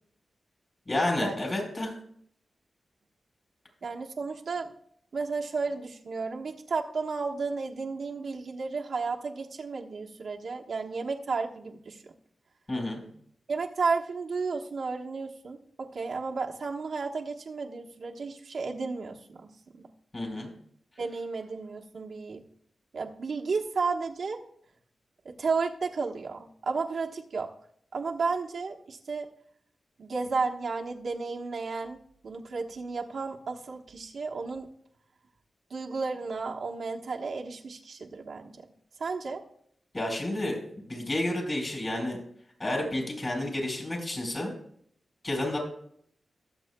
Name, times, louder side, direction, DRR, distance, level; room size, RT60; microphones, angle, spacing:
voice 1, 0.9-1.9 12.7-13.0 20.1-20.5 39.9-40.6 40.8-42.2 42.6-44.5 45.2-45.6, left 1 dB, 35° left, 0 dB, 4.3 m, -30 dB
voice 2, 3.8-4.7 5.1-12.1 13.5-19.5 19.8-19.9 21.0-22.4 22.9-24.4 25.2-27.5 27.9-29.3 30.0-32.0 32.2-34.7 35.7-38.5 39.0-39.4, right 4 dB, 75° right, 1 dB, 1.1 m, -33 dB
22.0 x 7.7 x 2.2 m, 0.66 s
wide cardioid pair, 90°, 0 cm